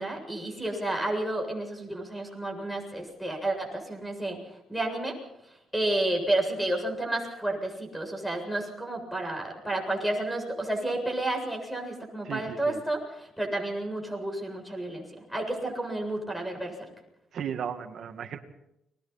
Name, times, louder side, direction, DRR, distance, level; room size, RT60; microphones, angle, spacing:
voice 1, 0.0-4.4 4.7-5.2 5.7-16.9, right 1 dB, ahead, 1 dB, 7.5 m, -31 dB
voice 2, 12.2-12.8 17.3-18.4, right 8 dB, 60° right, 7 dB, 2.0 m, -35 dB
30.0 x 21.5 x 4.3 m, 0.83 s
cardioid pair, 90°, 0 cm